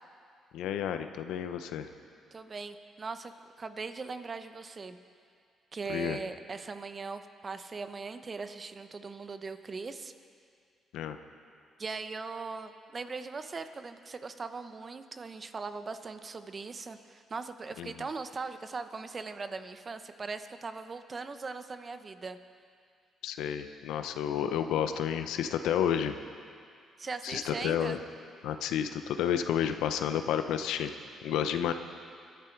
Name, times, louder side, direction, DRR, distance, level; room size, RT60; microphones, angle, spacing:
voice 1, 0.5-1.9 5.9-6.2 10.9-11.2 17.8-17.9 23.2-26.1 27.2-28.0 28.4-30.9 31.2-31.7, left 9 dB, 90° left, 8 dB, 0.8 m, -30 dB
voice 2, 2.3-3.3 3.6-5.0 5.7-10.1 11.8-22.4 27.0-28.0, right 4 dB, 35° right, 9 dB, 0.9 m, -40 dB
25.0 x 11.5 x 4.6 m, 2.2 s
cardioid pair, 90°, 0 cm